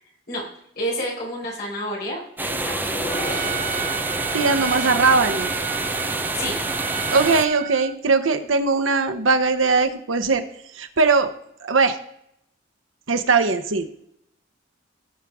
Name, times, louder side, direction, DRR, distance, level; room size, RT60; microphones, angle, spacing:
voice 1, 0.7-3.0 6.3-6.6, equal, 50° left, -5 dB, 4.8 m, -29 dB
sound 1, 2.4-7.5, right 2 dB, 10° right, 0.7 m, -27 dB
sound 2, 2.5-7.3, left 2 dB, 25° left, 0.7 m, -36 dB
Trumpet, 3.1-8.0, right 9 dB, 45° right, 0.4 m, -31 dB
voice 2, 4.3-5.5 7.1-10.4 10.7-11.3 11.6-12.0 13.1-13.9, right 4 dB, 85° right, 7 dB, 0.9 m, -20 dB
17.5 x 6.2 x 3.6 m, 0.74 s
head